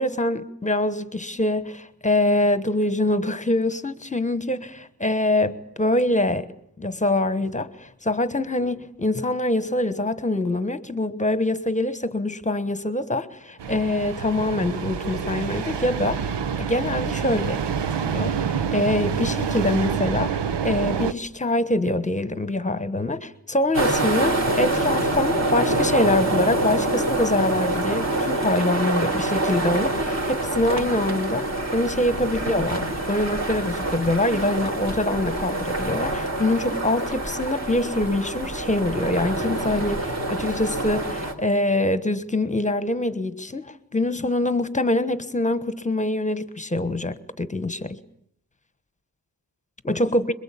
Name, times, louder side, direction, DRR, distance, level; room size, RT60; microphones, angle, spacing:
voice 1, 0.0-6.5 6.8-16.2 16.6-17.6 18.1-18.3 18.7-48.0 49.9-50.2, left 1 dB, 15° left, 1.2 m, -24 dB
sound 1, 13.6-21.1, right 7 dB, 90° right, 1.1 m, -27 dB
sound 2, 23.7-41.3, right 2 dB, 40° right, 3.9 m, -26 dB
26.5 x 22.0 x 8.4 m
wide cardioid pair, 175°, 41 cm